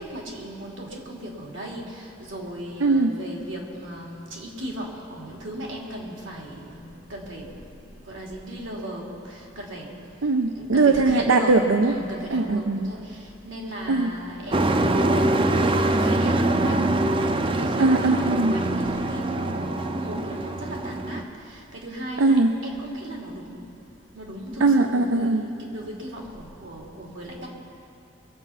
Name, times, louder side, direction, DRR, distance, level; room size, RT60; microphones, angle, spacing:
voice 1, 0.0-7.8 8.0-9.9 10.5-16.9 17.4-23.6 24.1-27.5, equal, 70° right, -2 dB, 2.8 m, -36 dB
voice 2, 2.8-3.2 10.2-11.9 12.3-12.9 13.9-14.1 17.8-18.6 22.2-22.6 24.6-25.4, right 3 dB, 90° right, 6 dB, 0.6 m, -20 dB
Truck, 14.5-21.2, right 2 dB, 25° right, 0.4 m, -23 dB
23.0 x 8.2 x 5.7 m, 2.9 s
head